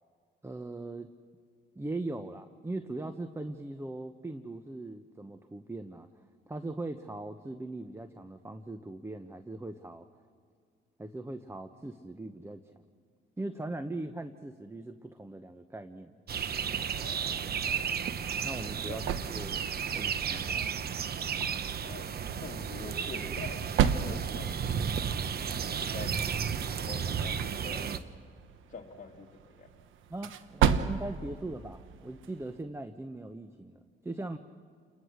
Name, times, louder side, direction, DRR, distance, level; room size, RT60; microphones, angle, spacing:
voice 1, 0.4-1.1 1.7-10.1 11.0-12.8 13.4-16.2 18.4-19.0 19.3-19.6 19.9-20.7 30.1-34.4, right 2 dB, 15° right, 9 dB, 0.9 m, -40 dB
sound 1, 16.3-28.0, right 7 dB, 50° right, 1.0 m, -33 dB
voice 2, 17.0-18.0 18.9-19.0 21.8-22.1 22.4-23.7 24.0-25.0 25.8-26.1 26.8-28.0 28.7-29.7, left 4 dB, 40° left, 0 dB, 2.2 m, -46 dB
sound 2, 18.2-32.7, right 8 dB, 80° right, 1.1 m, -35 dB
29.5 x 22.0 x 6.4 m, 2.1 s
cardioid pair, 90°, 20 cm